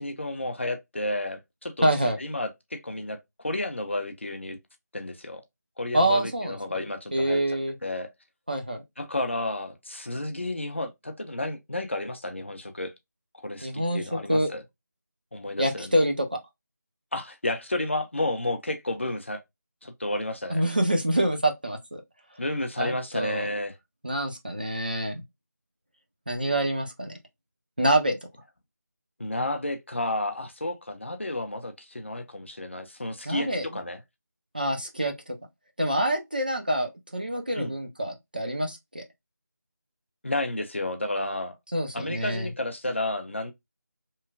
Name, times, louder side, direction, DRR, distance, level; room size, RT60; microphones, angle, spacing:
voice 1, 0.0-1.9 2.2-3.2 3.4-4.6 4.9-5.4 5.8-7.4 7.8-8.1 9.0-12.9 13.3-14.6 15.3-16.0 17.1-19.4 19.8-20.6 22.4-23.8 29.2-34.0 37.5-37.7 40.2-41.5 41.9-43.5, left 1 dB, 40° left, 0.4 m, -31 dB
voice 2, 1.8-2.2 5.9-6.6 7.1-7.7 8.5-8.8 13.6-14.5 15.6-16.4 20.5-22.0 22.8-23.5 24.0-25.2 26.3-27.1 27.8-28.2 33.3-33.7 34.5-35.3 35.8-39.0 41.7-42.5, right 1 dB, 30° right, 0.4 m, -26 dB
3.0 x 2.1 x 2.3 m
figure-of-eight pair, 165°, 10 cm